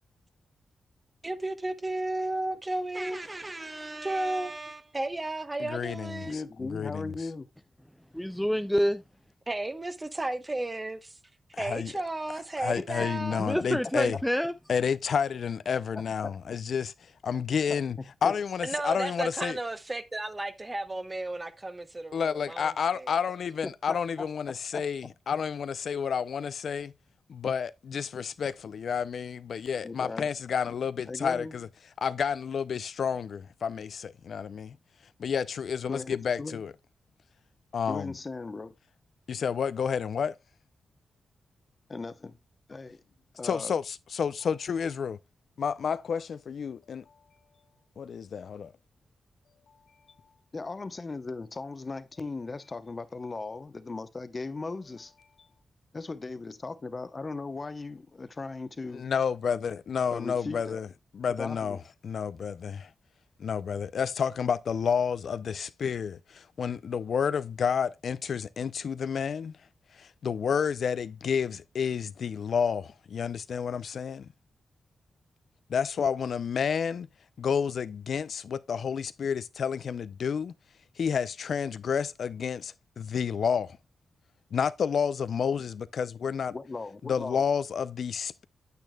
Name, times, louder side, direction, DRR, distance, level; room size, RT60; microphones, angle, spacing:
voice 1, 1.2-6.3 9.5-11.2 11.6-13.5 18.6-22.7 22.9-23.1, right 2 dB, 20° right, 0.9 m, -33 dB
voice 2, 5.6-7.1 11.5-11.9 12.6-14.2 14.7-16.9 17.2-19.6 22.1-26.9 27.3-31.7 32.0-34.7 35.2-36.7 37.7-38.2 39.3-40.4 43.4-45.2 45.6-47.0 48.0-48.7 58.9-60.9 61.1-61.8 62.0-62.9 63.4-69.5 69.9-74.3 75.7-77.1 77.4-80.5 81.0-83.8 84.5-86.5 87.0-88.4, left 7 dB, 70° left, 0.4 m, -30 dB
voice 3, 6.2-7.5 13.5-13.6 15.9-16.0 17.7-17.8 18.2-18.3 23.9-24.0 24.7-24.8 29.8-30.3 31.1-31.5 35.9-36.6 37.9-38.8 41.9-42.4 42.7-43.0 43.3-43.7 50.5-55.1 55.9-59.1 60.1-60.8 61.4-61.8 86.5-87.4, left 3 dB, 35° left, 0.8 m, -37 dB
voice 4, 8.1-9.0 13.4-14.5, equal, ahead, 0.4 m, -27 dB
9.2 x 8.5 x 2.2 m
wide cardioid pair, 110°, 0 cm